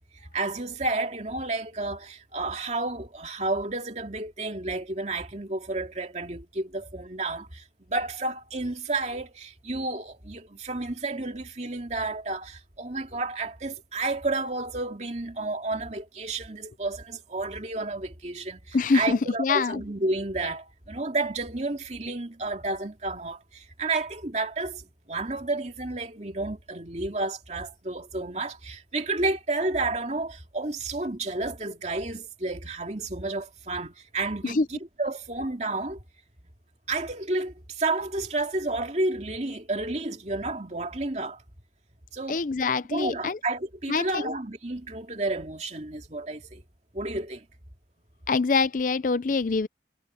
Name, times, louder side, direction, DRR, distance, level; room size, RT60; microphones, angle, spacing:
voice 1, 0.2-36.0 36.9-41.4 42.1-42.4 42.9-46.6 46.9-47.5, right 2 dB, 40° right, 2.5 m, -31 dB
voice 2, 18.7-19.8 34.4-34.6 42.3-43.4 43.9-44.3 48.3-49.7, left 4 dB, 45° left, 0.5 m, -25 dB
head